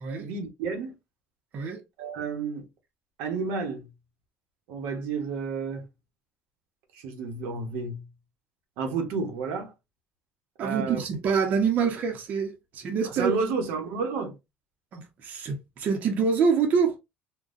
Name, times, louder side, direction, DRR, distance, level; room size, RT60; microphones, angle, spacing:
voice 1, 0.2-0.9 2.0-2.7 3.2-3.9 4.7-5.8 6.9-8.1 8.8-9.7 10.6-11.0 13.0-14.3, right 4 dB, 85° right, 1.0 m, -31 dB
voice 2, 10.6-13.3 14.9-17.0, right 6 dB, 45° right, 0.8 m, -26 dB
3.8 x 2.2 x 2.5 m
cardioid pair, 145°, 4 cm